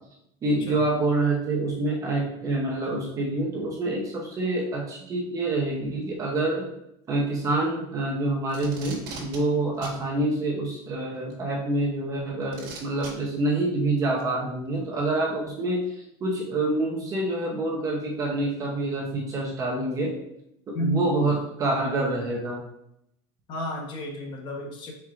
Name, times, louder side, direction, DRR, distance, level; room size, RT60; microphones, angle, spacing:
voice 1, 0.4-6.7 7.1-20.2 20.7-22.6, right 2 dB, 25° right, -2 dB, 0.8 m, -27 dB
Packing tape duct tape, 8.5-9.4 9.8-10.0 11.3-11.4 12.5-13.1 14.2-14.3, right 4 dB, 65° right, 1.4 m, -39 dB
voice 2, 20.7-21.3 23.5-24.9, equal, 35° left, 1 dB, 1.0 m, -31 dB
4.5 x 4.5 x 2.5 m, 0.79 s
supercardioid pair, 155°, 13 cm